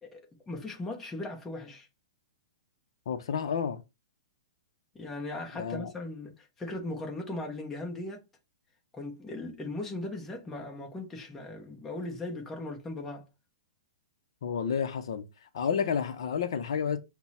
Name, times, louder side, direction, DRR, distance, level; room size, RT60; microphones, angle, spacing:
voice 1, 0.5-1.9 4.9-8.2 8.9-13.2, left 2 dB, 5° left, 0.6 m, -38 dB
voice 2, 3.1-3.8 5.6-5.9 14.4-15.3 15.5-17.0, left 7 dB, 55° left, 0.5 m, -30 dB
5.9 x 2.0 x 4.1 m
hypercardioid pair, 175°, 3 cm